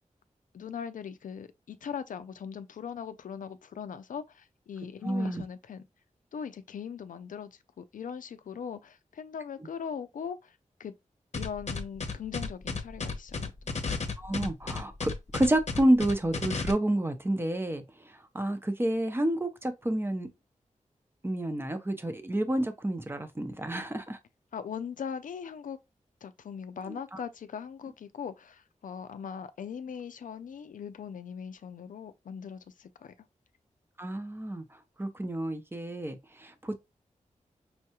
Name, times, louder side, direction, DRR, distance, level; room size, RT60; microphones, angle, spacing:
voice 1, 0.5-5.9 6.3-10.9 11.4-13.5 24.5-25.8 26.2-33.1, left 7 dB, 85° left, 0.4 m, -40 dB
voice 2, 5.0-5.4 14.2-20.3 21.2-24.2 26.9-27.2 34.0-34.6 35.0-36.7, right 1 dB, 15° right, 0.7 m, -29 dB
sound 1, 11.3-16.7, left 4 dB, 55° left, 0.8 m, -33 dB
5.6 x 2.3 x 2.9 m
wide cardioid pair, 80°, 13 cm